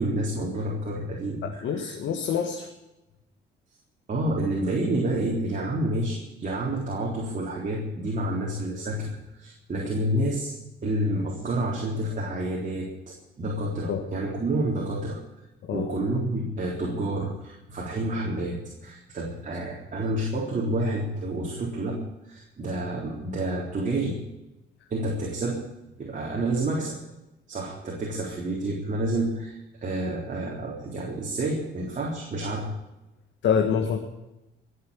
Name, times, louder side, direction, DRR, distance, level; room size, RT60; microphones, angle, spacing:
voice 1, 0.0-1.9 4.1-15.2 15.7-18.6 18.8-22.0 22.2-24.2 24.9-25.6 26.0-27.0 27.5-32.7, right 1 dB, 40° right, -2 dB, 3.8 m, -29 dB
voice 2, 1.4-2.7 13.9-14.0 15.7-15.9 33.4-34.0, left 7 dB, 70° left, 4 dB, 1.7 m, -26 dB
20.5 x 7.9 x 8.5 m, 0.95 s
cardioid pair, 90°, 20 cm